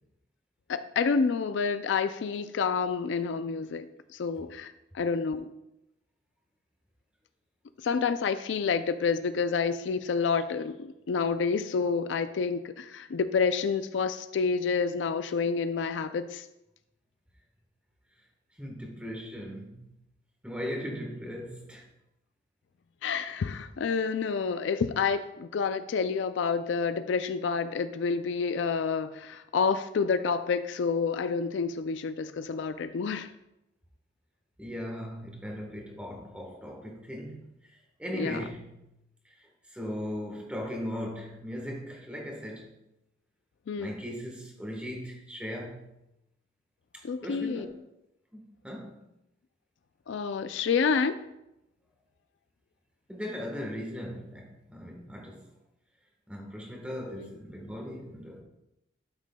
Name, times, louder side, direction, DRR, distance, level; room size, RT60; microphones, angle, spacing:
voice 1, 0.7-5.5 7.8-16.4 23.0-33.3 38.2-38.4 43.7-43.9 47.0-47.7 50.1-51.2 57.1-57.3, left 5 dB, 70° left, 11 dB, 0.4 m, -29 dB
voice 2, 18.6-19.8 20.4-21.8 34.6-37.5 38.0-38.8 39.4-42.7 43.7-45.9 46.9-47.8 48.3-49.0 53.1-55.4 56.3-58.4, equal, 5° right, 0 dB, 1.3 m, -38 dB
12.0 x 6.2 x 2.3 m, 0.88 s
head